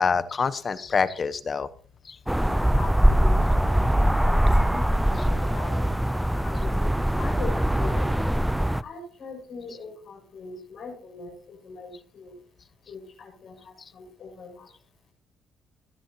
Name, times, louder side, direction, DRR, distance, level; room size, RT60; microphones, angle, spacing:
voice 1, 0.0-1.7 2.0-2.2 13.8-13.9, left 5 dB, 40° left, 15 dB, 1.1 m, -26 dB
sound 1, 2.3-8.8, equal, 5° right, 0.6 m, -22 dB
voice 2, 2.5-4.4 4.6-5.9 6.4-8.2 8.8-12.3 12.9-14.7, left 4 dB, 65° left, 0 dB, 7.0 m, -41 dB
25.5 x 10.5 x 3.0 m, 0.43 s
supercardioid pair, 75°, 0 cm